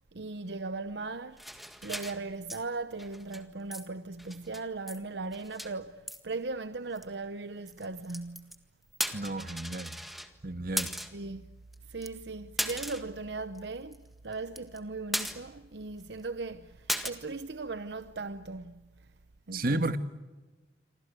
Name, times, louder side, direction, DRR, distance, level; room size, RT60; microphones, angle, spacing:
voice 1, 0.1-1.4 1.8-8.6 11.1-11.4 11.9-19.1 19.5-20.0, right 3 dB, 70° right, 0.9 m, -38 dB
sound 1, 1.4-2.6 2.9-3.5 3.7-3.9 4.1-5.0 5.2-5.7 6.1-6.2 7.0-7.1 7.7-8.6 8.9-10.3 10.8-11.2 11.7-11.8 12.0-12.1 12.6-13.2 13.6-13.7 13.9-14.0 14.3-14.8 15.1-15.7 16.0-16.1 16.9-17.1, equal, ahead, 1.7 m, -36 dB
voice 2, 9.1-10.0 10.4-10.9 19.5-20.0, right 2 dB, 55° right, 1.6 m, -32 dB
28.0 x 25.5 x 8.3 m
head